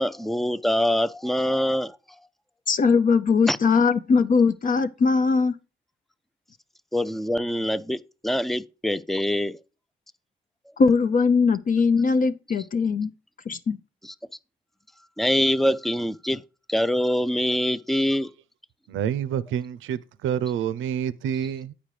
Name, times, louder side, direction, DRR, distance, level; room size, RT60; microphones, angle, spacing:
voice 1, 0.0-2.0 3.5-3.6 6.9-9.6 14.0-14.1 15.2-16.4 16.7-18.3, equal, ahead, 0.4 m, -24 dB
voice 2, 2.7-5.5 10.8-13.1 13.5-13.8, left 5 dB, 45° left, 0.6 m, -20 dB
voice 3, 18.9-21.7, right 9 dB, 80° right, 0.6 m, -28 dB
8.9 x 5.0 x 4.9 m
cardioid pair, 90°, 20 cm